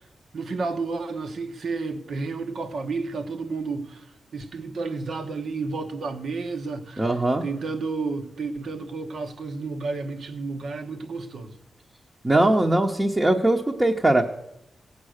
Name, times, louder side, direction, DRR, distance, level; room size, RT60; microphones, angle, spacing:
voice 1, 0.3-4.1 4.3-7.1 7.4-11.6, right 4 dB, 70° right, 1.2 m, -31 dB
voice 2, 7.0-7.4 12.2-14.3, right 1 dB, 15° right, 0.9 m, -20 dB
16.0 x 8.6 x 6.5 m
wide cardioid pair, 130°, 0 cm